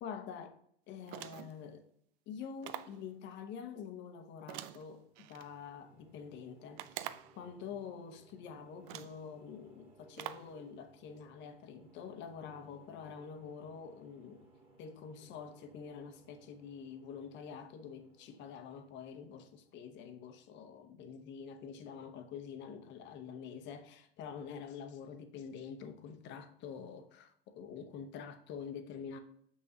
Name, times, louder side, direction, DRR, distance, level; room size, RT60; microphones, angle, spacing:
voice 1, 0.0-0.6 0.9-1.9 2.3-14.5 14.8-29.2, left 6 dB, 35° left, 1.0 m, -47 dB
sound 1, 1.1-1.6 2.6-3.0 4.5-5.5 6.8-7.4 8.3-8.4 8.9-9.2 10.2-10.5, right 13 dB, 40° right, 0.4 m, -45 dB
sound 2, 4.9-20.2, right 3 dB, 20° right, 1.9 m, -64 dB
6.2 x 5.7 x 2.8 m
hypercardioid pair, 105°, 31 cm